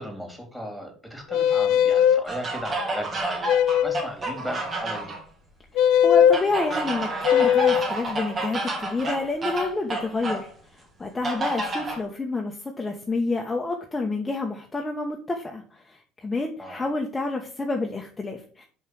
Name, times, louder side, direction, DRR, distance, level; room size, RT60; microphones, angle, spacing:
voice 1, 0.0-5.1 16.6-16.9, equal, ahead, 2 dB, 3.6 m, -36 dB
sound 1, 1.3-2.2 3.5-4.1 5.8-6.4 7.2-7.9, left 9 dB, 75° left, 0.5 m, -19 dB
sound 2, 2.3-5.2 6.3-10.5 11.2-12.0, right 2 dB, 40° right, 2.6 m, -30 dB
voice 2, 5.7-10.5 10.7-18.7, left 3 dB, 20° left, 1 dB, 1.3 m, -29 dB
5.6 x 5.5 x 6.4 m, 0.43 s
supercardioid pair, 85°, 0 cm